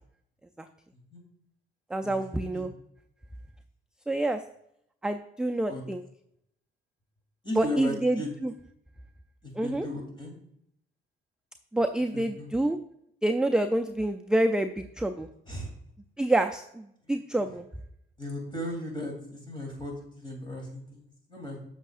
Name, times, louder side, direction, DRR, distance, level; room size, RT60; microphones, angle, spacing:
voice 1, 1.9-2.7 4.1-4.4 5.0-6.0 7.6-8.5 9.6-9.8 11.7-12.8 13.2-15.3 16.2-17.7, right 1 dB, 5° right, 6 dB, 0.4 m, -27 dB
voice 2, 7.4-8.3 9.4-10.3 12.1-12.5 15.5-15.7 17.0-17.5 18.2-21.6, left 1 dB, 25° left, 1 dB, 2.9 m, -37 dB
8.1 x 6.4 x 2.4 m, 0.74 s
cardioid pair, 90°, 20 cm